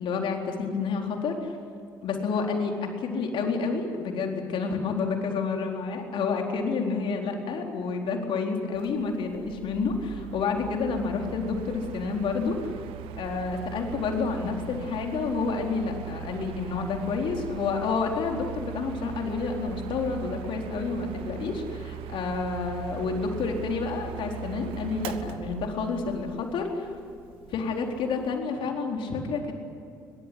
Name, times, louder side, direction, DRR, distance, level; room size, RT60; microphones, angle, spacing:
voice 1, 0.0-1.6 2.0-12.8 13.2-27.0 27.5-29.5, left 4 dB, 55° left, 2 dB, 4.2 m, -29 dB
Mechanical fan, 8.7-28.4, right 13 dB, 65° right, 1.1 m, -40 dB
22.5 x 22.5 x 10.0 m, 2.3 s
figure-of-eight pair, 50°, 10 cm